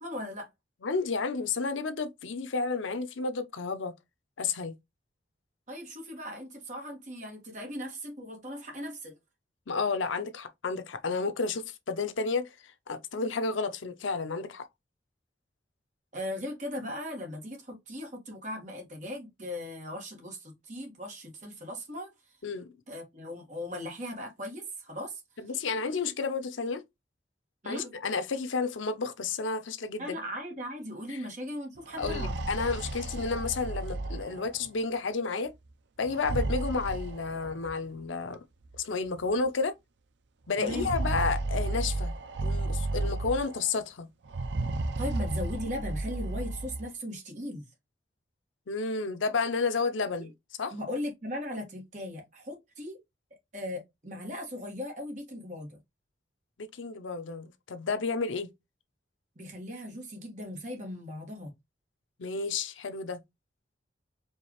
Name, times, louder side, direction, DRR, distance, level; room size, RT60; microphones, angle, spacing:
voice 1, 0.0-0.5 5.7-9.2 16.1-22.1 22.9-25.2 27.6-27.9 30.0-32.3 40.6-40.9 45.0-47.7 50.2-50.3 50.7-53.0 53.5-55.8 59.3-61.5, left 1 dB, 40° right, 1.6 m, -38 dB
voice 2, 0.8-3.9 4.4-4.7 9.7-12.5 12.9-14.7 22.4-22.7 25.4-26.8 27.6-30.2 31.1-31.2 32.0-35.5 36.0-38.4 38.8-39.7 40.5-42.1 42.4-44.1 48.7-50.3 50.6-50.7 56.6-58.5 62.2-63.2, left 4 dB, 90° left, 0.7 m, -31 dB
sound 1, 31.8-34.7 36.0-37.7 38.7-38.8 39.2-39.3 40.6-43.7 44.2-46.8, right 2 dB, 70° right, 0.5 m, -33 dB
4.7 x 2.7 x 3.0 m
head